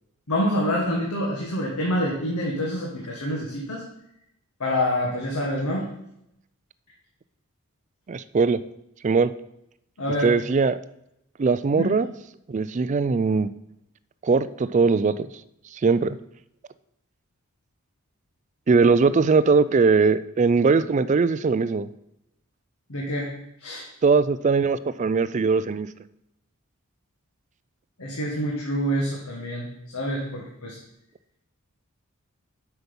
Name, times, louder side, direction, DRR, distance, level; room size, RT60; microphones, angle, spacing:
voice 1, 0.3-3.8 4.6-5.9 10.0-10.3 11.7-11.9 22.9-23.3 23.6-23.8 28.0-29.7 29.9-30.8, equal, 85° left, -2 dB, 1.6 m, -26 dB
voice 2, 8.1-8.6 9.0-9.3 10.2-10.8 11.4-12.1 12.5-13.5 14.2-15.3 15.8-16.2 18.7-21.9 24.0-25.9, right 4 dB, 35° right, 15 dB, 0.3 m, -20 dB
7.8 x 6.0 x 5.3 m, 0.80 s
head